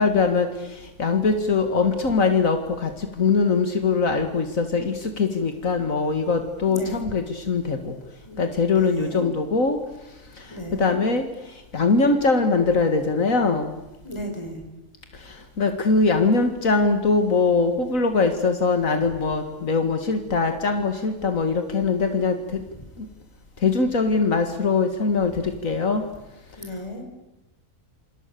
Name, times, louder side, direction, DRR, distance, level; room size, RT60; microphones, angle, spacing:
voice 1, 0.0-7.9 8.4-9.8 10.8-11.2 11.7-13.7 15.3-22.4 23.6-26.0, left 4 dB, 75° left, 6 dB, 2.3 m, -22 dB
voice 2, 6.6-7.0 8.2-8.4 8.8-9.3 10.5-11.0 14.0-14.6 26.6-27.0, equal, 20° left, 3 dB, 4.7 m, -34 dB
28.0 x 26.5 x 6.9 m, 0.96 s
omnidirectional pair, 1.4 m